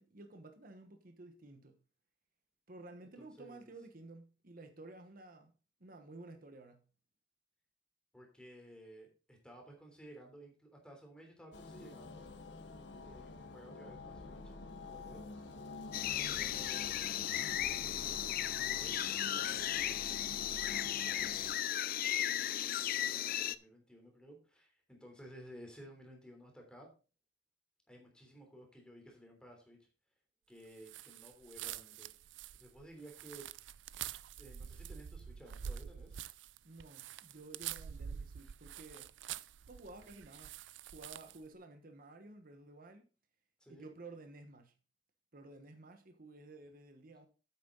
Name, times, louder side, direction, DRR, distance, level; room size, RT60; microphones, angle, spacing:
voice 1, 0.0-1.8 2.7-5.5 5.8-6.8 36.6-39.1 39.7-40.5 40.9-43.1 43.7-44.7 45.3-47.3, right 2 dB, 50° right, 1.2 m, -53 dB
voice 2, 3.2-3.7 8.1-12.3 13.0-14.6 14.9-15.2 16.3-17.2 17.6-18.2 18.6-20.3 21.0-26.9 27.9-29.8 30.5-32.1 32.5-33.5 34.4-36.2 43.6-43.9, right 1 dB, 5° left, 3.2 m, -55 dB
sound 1, 11.5-21.6, left 3 dB, 70° left, 1.3 m, -48 dB
sound 2, 15.9-23.5, left 11 dB, 55° left, 0.4 m, -36 dB
sound 3, 30.8-41.5, right 9 dB, 80° right, 0.4 m, -46 dB
9.4 x 8.6 x 3.8 m
head